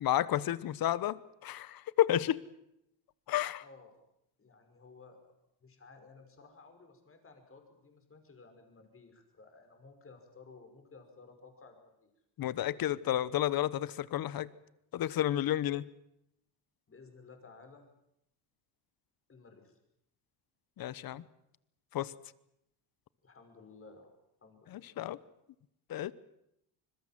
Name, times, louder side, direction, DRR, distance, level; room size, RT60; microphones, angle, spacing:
voice 1, 0.0-2.4 3.3-3.6 12.4-14.5 14.9-15.8 20.8-21.2 21.9-22.1 24.7-25.2 25.9-26.1, left 12 dB, 50° left, 19 dB, 1.1 m, -31 dB
voice 2, 3.6-3.9 4.4-5.2 5.6-12.1 16.9-17.9 19.3-19.8 23.2-24.1 24.4-24.9, left 4 dB, 30° left, 6 dB, 5.6 m, -56 dB
26.0 x 21.5 x 7.6 m, 0.79 s
cardioid pair, 115°, 46 cm